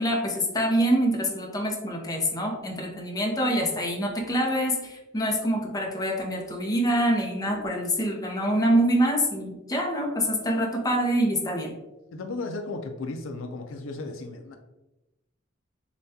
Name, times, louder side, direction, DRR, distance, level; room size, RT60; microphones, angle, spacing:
voice 1, 0.0-11.7, equal, 20° left, 0 dB, 0.7 m, -25 dB
voice 2, 10.4-10.9 12.1-14.6, left 3 dB, 70° left, 5 dB, 0.4 m, -36 dB
6.8 x 2.3 x 2.7 m, 1.0 s
head